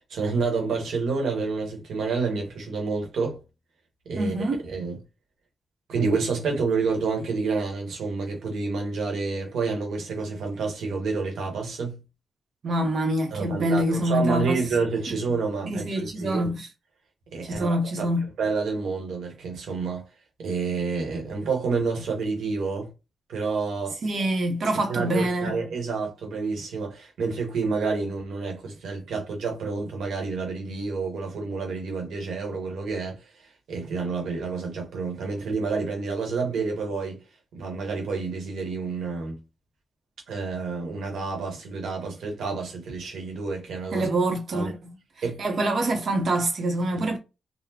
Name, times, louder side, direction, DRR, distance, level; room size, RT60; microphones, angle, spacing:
voice 1, 0.1-3.4 4.0-4.3 4.6-5.0 5.9-12.0 13.3-16.5 17.3-18.1 18.4-20.0 20.4-22.9 23.3-24.0 24.9-33.2 33.7-37.2 37.5-39.4 40.3-44.1 44.5-44.7 45.2-45.4 46.9-47.0, right 4 dB, 85° right, 1.5 m, -29 dB
voice 2, 4.2-4.6 12.6-14.6 15.7-16.7 17.4-18.3 24.0-25.6 43.9-45.0 45.4-47.2, right 1 dB, 60° right, 1.1 m, -25 dB
4.2 x 2.4 x 2.9 m
cardioid pair, 90°, 0 cm